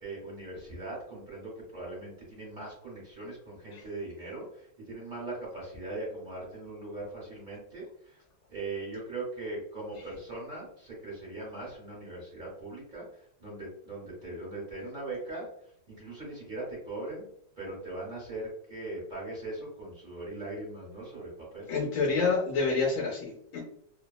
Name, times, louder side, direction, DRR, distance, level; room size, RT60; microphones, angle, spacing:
voice 1, 0.0-8.2 8.5-17.2 17.6-21.7, right 2 dB, 40° right, -5 dB, 0.7 m, -40 dB
voice 2, 21.7-23.6, left 4 dB, 80° left, -2 dB, 1.4 m, -28 dB
3.3 x 2.1 x 2.3 m, 0.70 s
omnidirectional pair, 2.2 m